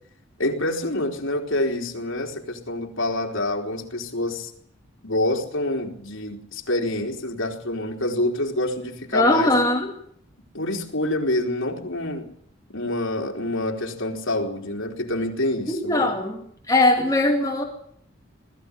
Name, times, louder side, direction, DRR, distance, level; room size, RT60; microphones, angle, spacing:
voice 1, 0.4-4.5 5.0-9.5 10.5-12.3 12.7-16.1, left 1 dB, 75° left, 3.7 m, -27 dB
voice 2, 9.1-9.9 15.7-16.4 16.7-17.6, left 2 dB, 15° left, 2.3 m, -20 dB
20.5 x 14.5 x 9.9 m
head